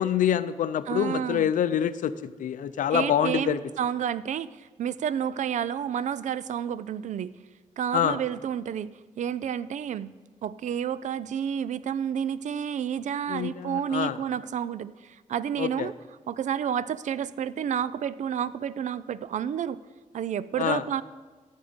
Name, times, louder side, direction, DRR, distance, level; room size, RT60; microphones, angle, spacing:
voice 1, 0.0-3.6 7.9-8.2 13.3-14.2 15.6-15.9 20.6-20.8, left 10 dB, 80° left, 14 dB, 0.5 m, -26 dB
voice 2, 0.9-1.5 2.9-7.4 7.8-10.1 10.4-15.9 16.3-19.8 20.1-21.0, right 8 dB, 65° right, 17 dB, 0.4 m, -30 dB
14.0 x 7.3 x 5.1 m, 1.4 s
cardioid pair, 110°, 13 cm